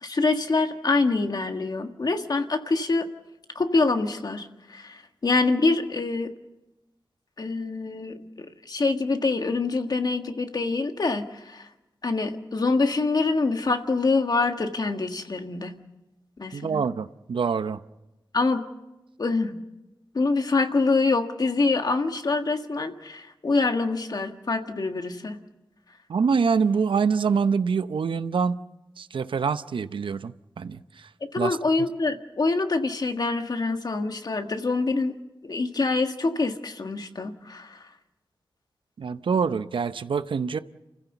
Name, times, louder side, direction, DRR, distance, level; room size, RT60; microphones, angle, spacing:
voice 1, 0.0-3.1 3.5-6.3 7.4-11.7 12.0-15.7 16.4-16.8 18.3-18.6 19.2-19.6 20.1-25.4 31.3-35.2 35.4-37.8, left 3 dB, 50° left, 1.6 m, -25 dB
voice 2, 16.5-17.8 26.1-28.6 29.0-31.1 31.4-31.6 39.0-40.6, right 5 dB, 80° right, 0.7 m, -25 dB
29.0 x 15.5 x 7.0 m
wide cardioid pair, 85°, 8 cm